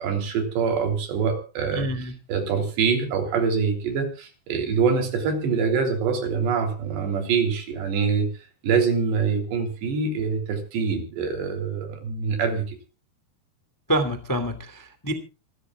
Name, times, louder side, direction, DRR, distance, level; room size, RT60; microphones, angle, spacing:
voice 1, 0.0-1.9 2.3-8.3 8.6-12.8, right 5 dB, 80° right, 6 dB, 5.4 m, -24 dB
voice 2, 1.7-2.1 13.9-15.1, right 1 dB, 10° left, 8 dB, 0.8 m, -26 dB
26.5 x 12.5 x 2.3 m, 0.32 s
omnidirectional pair, 4.8 m